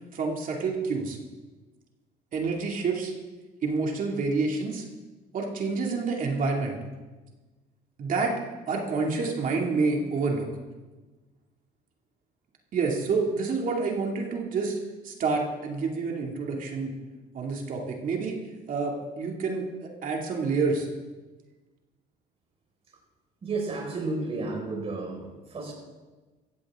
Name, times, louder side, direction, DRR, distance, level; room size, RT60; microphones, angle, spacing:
voice 1, 0.1-1.2 2.3-3.1 3.6-4.8 5.3-6.8 8.0-8.4 8.7-10.5 12.7-14.8 15.0-16.9 17.3-18.4 18.7-20.9, right 4 dB, 55° right, 0 dB, 2.5 m, -28 dB
voice 2, 23.4-25.7, right 3 dB, 35° right, -1 dB, 5.2 m, -32 dB
16.0 x 15.5 x 3.7 m, 1.2 s
cardioid pair, 110°, 17 cm